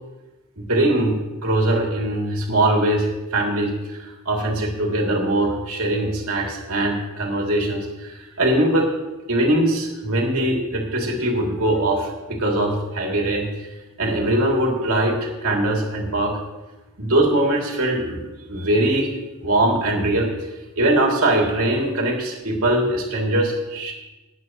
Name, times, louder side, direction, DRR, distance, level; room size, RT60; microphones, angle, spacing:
voice 1, 0.6-1.1 1.4-8.9 9.3-13.5 14.0-16.4 17.0-18.2 18.5-19.1 19.4-20.3 20.8-23.9, right 1 dB, 75° right, -1 dB, 2.9 m, -21 dB
19.0 x 9.2 x 3.1 m, 1.1 s
head